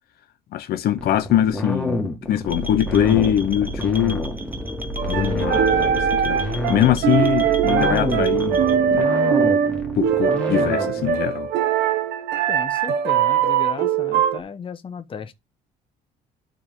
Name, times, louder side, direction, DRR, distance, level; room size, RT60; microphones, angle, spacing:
voice 1, 0.5-4.2 5.1-6.4 6.7-9.1 9.9-11.5, left 11 dB, 70° left, 0.9 m, -22 dB
sound 1, 1.0-11.1, left 1 dB, 5° left, 2.0 m, -29 dB
sound 2, 2.5-8.8, equal, 10° right, 1.1 m, -30 dB
sound 3, 5.0-14.4, right 8 dB, 75° right, 1.0 m, -21 dB
voice 2, 12.5-15.3, left 6 dB, 30° left, 1.0 m, -35 dB
11.5 x 4.4 x 3.8 m
cardioid pair, 110°, 17 cm